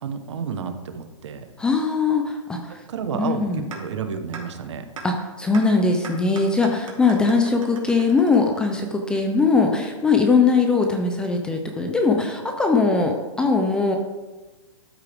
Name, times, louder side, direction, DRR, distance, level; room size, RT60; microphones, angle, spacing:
voice 1, 0.0-1.5 2.7-4.9, right 6 dB, 60° right, 8 dB, 1.2 m, -31 dB
voice 2, 1.6-2.8 3.1-3.6 5.0-14.0, left 4 dB, 5° left, 3 dB, 0.4 m, -20 dB
sound 1, 3.7-3.8 4.3-4.4 5.0-5.1 5.5-5.6 6.0-9.0, right 5 dB, 85° right, 2.8 m, -38 dB
13.0 x 8.3 x 3.5 m, 1.2 s
hypercardioid pair, 165°, 17 cm